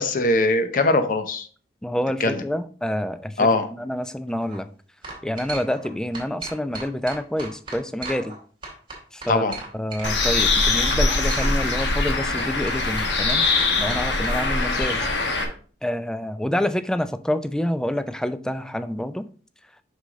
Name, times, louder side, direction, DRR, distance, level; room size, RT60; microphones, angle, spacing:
voice 1, 0.0-1.5 2.2-2.4 3.4-3.7 9.3-9.6, left 2 dB, 50° left, 0.7 m, -21 dB
voice 2, 1.8-3.5 3.8-4.7 5.2-8.4 9.1-9.5 9.7-13.5 13.8-15.1 15.8-19.3, left 1 dB, 5° left, 0.3 m, -27 dB
sound 1, 4.3-4.6 5.0-5.9 6.1-8.4 8.6-10.1 10.4-10.5 11.0-11.5 11.8-14.4, right 3 dB, 30° right, 2.2 m, -36 dB
Bird, 10.0-15.4, left 3 dB, 85° left, 1.2 m, -22 dB
6.0 x 5.5 x 3.7 m
head